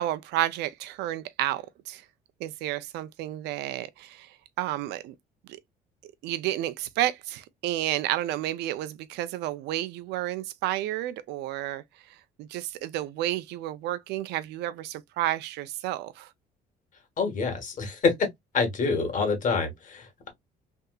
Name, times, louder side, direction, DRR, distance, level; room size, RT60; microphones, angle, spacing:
voice 1, 0.0-2.0 2.4-4.3 4.6-5.1 6.2-11.8 12.4-16.3, right 14 dB, 85° right, 0.5 m, -31 dB
voice 2, 17.2-18.3 18.5-20.3, left 4 dB, 50° left, 1.5 m, -26 dB
3.5 x 2.8 x 2.3 m
cardioid pair, 110°, 17 cm